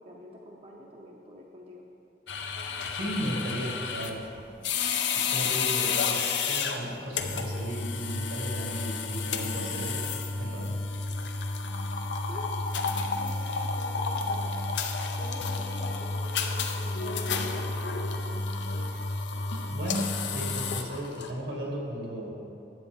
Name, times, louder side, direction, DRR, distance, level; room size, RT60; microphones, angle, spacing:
voice 1, 0.0-1.8 12.3-12.5 13.1-14.6 15.2-18.5, equal, 35° right, -1 dB, 0.7 m, -47 dB
sound 1, 2.3-21.3, left 4 dB, 85° left, 0.7 m, -31 dB
voice 2, 2.9-4.2 5.3-10.0 10.4-10.7 19.7-22.4, right 1 dB, 80° right, -2 dB, 2.1 m, -35 dB
10.5 x 7.9 x 3.6 m, 2.7 s
head